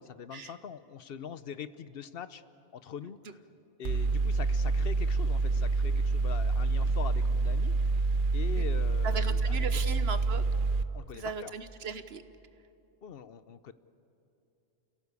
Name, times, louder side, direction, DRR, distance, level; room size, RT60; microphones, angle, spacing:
voice 1, 0.0-2.4 2.7-3.4 3.8-7.8 8.3-9.6 10.9-11.5 13.0-13.7, left 7 dB, 70° left, 14 dB, 0.9 m, -43 dB
Mechanical fan, 3.8-10.8, right 3 dB, 55° right, 0.9 m, -27 dB
voice 2, 9.0-10.4 11.1-12.2, right 5 dB, 75° right, 11 dB, 1.3 m, -37 dB
30.0 x 16.5 x 8.2 m, 2.9 s
omnidirectional pair, 1.1 m